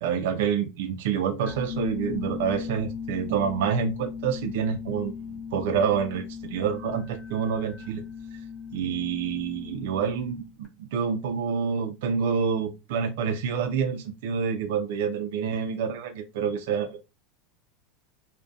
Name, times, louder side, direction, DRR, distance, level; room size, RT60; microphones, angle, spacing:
voice 1, 0.0-8.0 8.7-17.0, right 7 dB, 60° right, 0.3 m, -28 dB
sound 1, 1.4-10.7, left 6 dB, 5° left, 0.5 m, -37 dB
2.5 x 2.1 x 2.3 m
supercardioid pair, 175°, 0 cm